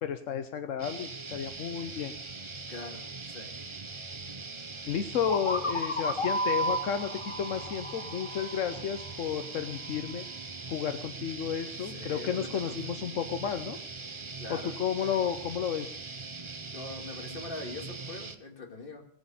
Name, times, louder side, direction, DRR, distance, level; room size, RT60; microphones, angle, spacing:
voice 1, 0.0-2.1 4.9-10.2 10.7-13.8 14.5-16.0, left 8 dB, 80° left, 8 dB, 1.2 m, -32 dB
sound 1, 0.8-18.3, right 4 dB, 25° right, 0.8 m, -41 dB
voice 2, 2.7-3.0 3.3-3.5 8.4-8.5 11.7-12.8 14.4-14.7 15.0-15.1 16.6-19.0, left 3 dB, 45° left, 2 dB, 2.4 m, -42 dB
sound 2, 5.3-9.1, equal, 25° left, 1.2 m, -32 dB
18.0 x 7.8 x 6.9 m, 0.63 s
omnidirectional pair, 1.3 m